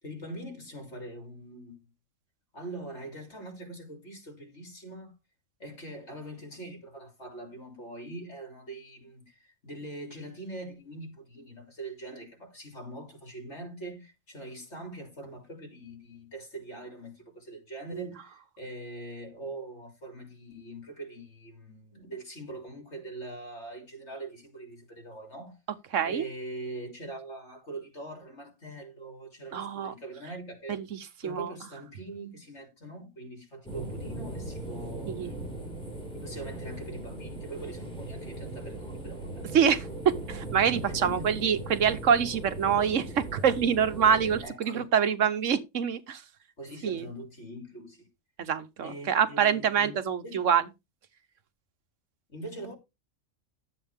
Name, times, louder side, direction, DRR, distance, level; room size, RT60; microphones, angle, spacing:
voice 1, 0.0-1.9 2.5-5.2 5.6-25.6 26.0-30.8 31.2-35.2 36.1-39.5 40.8-41.3 44.4-44.9 46.6-48.1 48.8-50.4 52.3-52.8, right 2 dB, 60° left, 3.7 m, -42 dB
voice 2, 25.9-26.2 29.5-29.9 30.7-31.0 31.2-31.5 35.1-35.3 39.5-46.2 46.8-47.1 48.4-50.6, right 7 dB, 75° right, 1.3 m, -26 dB
sound 1, 33.6-44.4, right 2 dB, 5° left, 5.3 m, -39 dB
12.0 x 8.0 x 3.6 m
omnidirectional pair, 1.3 m